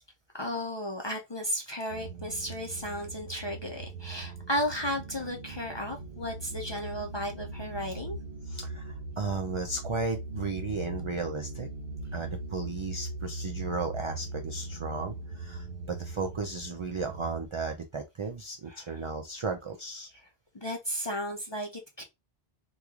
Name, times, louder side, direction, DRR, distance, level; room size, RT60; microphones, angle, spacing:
voice 1, 0.3-8.2 18.7-19.0 20.5-22.0, equal, 35° left, 0.4 m, -34 dB
sound 1, 1.9-17.5, right 2 dB, 70° right, 0.9 m, -40 dB
voice 2, 8.5-11.7 12.1-20.1, right 4 dB, 55° right, 0.3 m, -35 dB
3.0 x 2.3 x 3.5 m
omnidirectional pair, 1.1 m